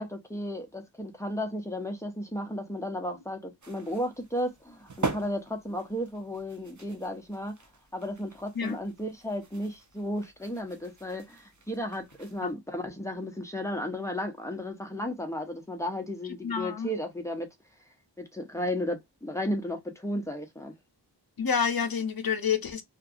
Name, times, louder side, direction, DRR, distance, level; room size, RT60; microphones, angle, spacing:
voice 1, 0.0-7.6 7.9-17.5 18.2-20.7, left 1 dB, 5° left, 0.7 m, -34 dB
sound 1, 3.6-12.5, right 4 dB, 40° right, 0.6 m, -42 dB
voice 2, 16.4-16.9 21.4-22.8, left 6 dB, 50° left, 0.6 m, -28 dB
2.6 x 2.4 x 2.4 m
wide cardioid pair, 45°, 46 cm